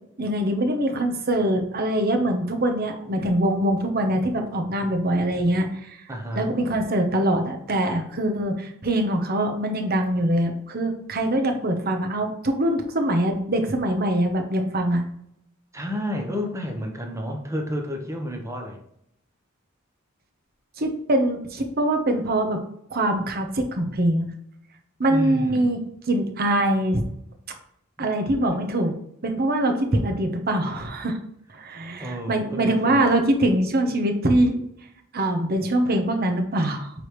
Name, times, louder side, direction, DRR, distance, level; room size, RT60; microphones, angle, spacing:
voice 1, 0.2-6.0 6.4-15.0 20.8-22.6 22.9-24.3 25.0-25.8 26.1-27.0 28.0-28.9 29.2-31.2 31.5-34.6 35.1-36.9, right 1 dB, 50° right, 4 dB, 1.0 m, -23 dB
voice 2, 6.1-6.5 15.7-18.8 25.1-25.8 32.0-33.2, equal, 15° right, 3 dB, 1.0 m, -30 dB
9.0 x 3.4 x 3.2 m, 0.73 s
head